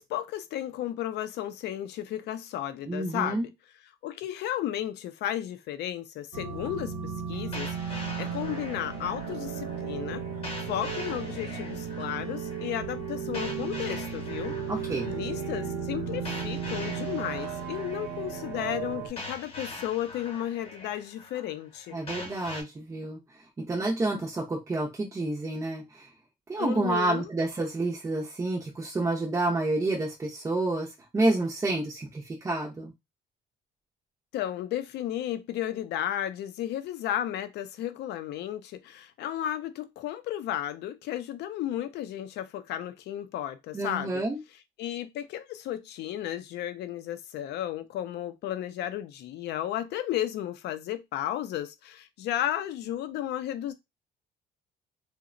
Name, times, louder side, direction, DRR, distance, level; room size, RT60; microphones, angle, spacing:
voice 1, 0.0-3.5 4.0-10.2 10.6-14.6 15.1-22.0 26.6-27.3 34.3-44.2 44.8-53.7, left 12 dB, 70° left, 0.4 m, -33 dB
voice 2, 2.9-3.5 14.7-15.1 21.9-23.2 23.6-26.1 26.5-30.9 31.1-32.9 43.7-44.4, right 2 dB, 15° right, 0.5 m, -29 dB
sound 1, 6.3-19.1, right 7 dB, 75° right, 0.9 m, -35 dB
sound 2, 7.5-22.6, left 2 dB, 35° left, 0.9 m, -43 dB
2.8 x 2.1 x 2.4 m
cardioid pair, 130°, 18 cm